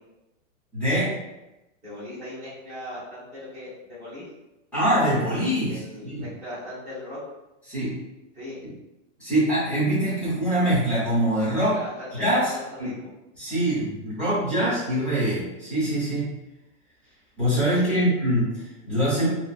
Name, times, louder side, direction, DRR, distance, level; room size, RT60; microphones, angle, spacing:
voice 1, 0.7-1.1 4.7-6.3 7.7-8.0 9.2-11.8 12.2-12.5 12.8-12.9 13.4-16.3 17.4-19.3, right 1 dB, 5° left, -13 dB, 0.8 m, -24 dB
voice 2, 1.8-4.2 5.6-7.2 8.3-8.6 11.5-13.1 17.8-18.1 19.2-19.3, left 1 dB, 15° right, -12 dB, 1.2 m, -39 dB
3.0 x 2.2 x 2.4 m, 0.96 s
supercardioid pair, 175°, 38 cm